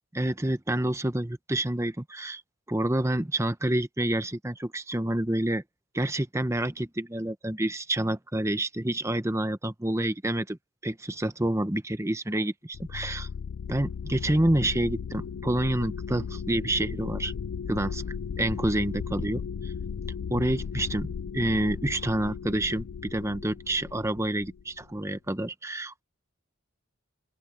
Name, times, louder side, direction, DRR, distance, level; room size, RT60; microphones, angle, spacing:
voice 1, 0.1-2.4 2.7-5.6 5.9-13.3 13.7-17.3 17.7-18.0 18.4-19.4 20.3-26.0, right 1 dB, 15° right, 0.9 m, -28 dB
sound 1, 12.7-25.0, left 6 dB, 75° left, 0.3 m, -36 dB
open air
head